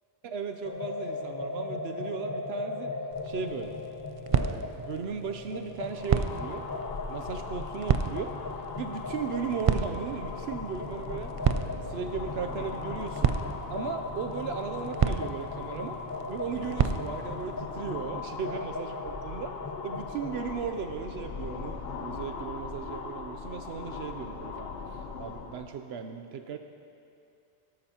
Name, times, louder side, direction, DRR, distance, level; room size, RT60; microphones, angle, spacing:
voice 1, 0.2-2.9 3.2-3.8 4.3-6.7 7.1-8.3 8.8-11.3 11.7-13.3 13.7-16.0 16.3-19.5 19.8-24.7 25.2-26.6, right 6 dB, 75° right, 6 dB, 0.9 m, -36 dB
sound 1, 0.6-20.4, left 3 dB, 25° left, 0.4 m, -39 dB
sound 2, 3.1-17.6, right 7 dB, 60° right, 0.3 m, -33 dB
sound 3, 5.8-25.7, left 5 dB, 65° left, 1.0 m, -40 dB
18.5 x 12.5 x 2.9 m, 2.6 s
omnidirectional pair, 1.1 m